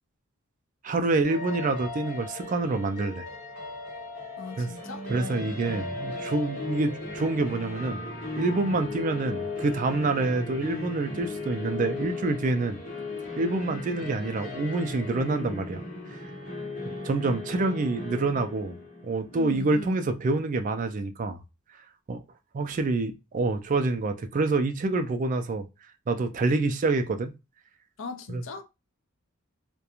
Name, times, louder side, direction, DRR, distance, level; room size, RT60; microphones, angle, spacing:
voice 1, 0.8-3.3 4.6-4.7 5.1-8.0 8.4-12.8 13.4-15.8 16.1-16.2 17.0-18.7 19.0-21.4 22.1-22.2 22.5-25.6 26.1-27.3 28.3-28.4, right 3 dB, 40° right, 0.3 m, -27 dB
sound 1, 1.2-19.3, left 2 dB, 45° left, 1.1 m, -37 dB
voice 2, 4.4-5.5 19.3-20.1 28.0-28.6, left 4 dB, 70° left, 0.5 m, -39 dB
2.4 x 2.1 x 2.8 m
head